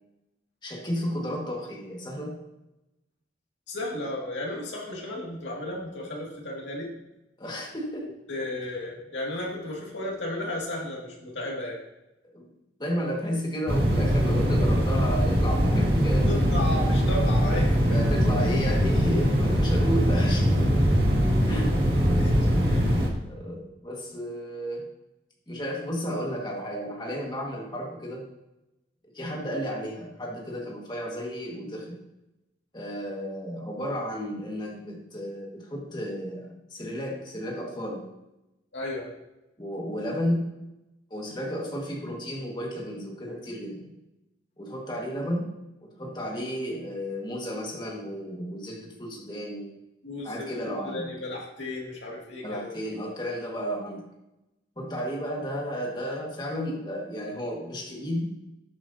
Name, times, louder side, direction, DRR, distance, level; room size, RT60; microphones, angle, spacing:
voice 1, 0.6-2.3 7.4-8.1 12.2-12.5 12.8-16.5 17.9-20.8 21.4-21.8 23.2-24.8 25.5-28.2 29.1-32.0 32.7-38.0 39.6-40.4 41.1-43.9 44.6-45.5 45.8-49.8 50.2-51.1 52.4-54.0 54.8-58.3, equal, 25° left, -2 dB, 1.9 m, -33 dB
voice 2, 3.7-6.9 8.3-11.8 16.3-17.8 22.2-22.9 38.7-39.1 50.0-52.8, left 1 dB, 90° left, -3 dB, 2.3 m, -34 dB
sound 1, 13.7-23.1, equal, 60° right, 2.1 m, -22 dB
13.0 x 7.7 x 2.8 m, 0.96 s
head